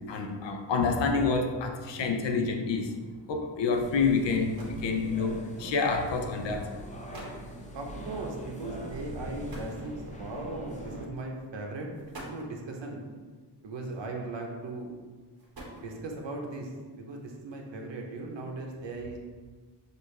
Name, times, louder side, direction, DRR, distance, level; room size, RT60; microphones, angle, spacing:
voice 1, 0.1-3.0 3.3-6.7, left 4 dB, 85° left, 4 dB, 0.6 m, -28 dB
sound 1, 3.7-11.1, equal, 15° left, 0.6 m, -44 dB
sound 2, 4.3-4.9 5.9-6.2 6.8-6.9 7.1-7.5 9.5-10.3 11.3-11.4 11.9-12.6 13.9-14.4 15.2-16.2, right 1 dB, 55° right, 1.2 m, -46 dB
sound 3, 4.7-4.9 5.2-5.4 6.5-7.2 7.9-8.3 8.6-11.1, right 1 dB, 30° right, 0.3 m, -45 dB
voice 2, 7.7-11.9 12.2-13.0 13.6-14.9 15.8-19.2, right 2 dB, 90° right, 0 dB, 0.8 m, -38 dB
6.5 x 2.5 x 3.1 m, 1.4 s
wide cardioid pair, 155°, 43 cm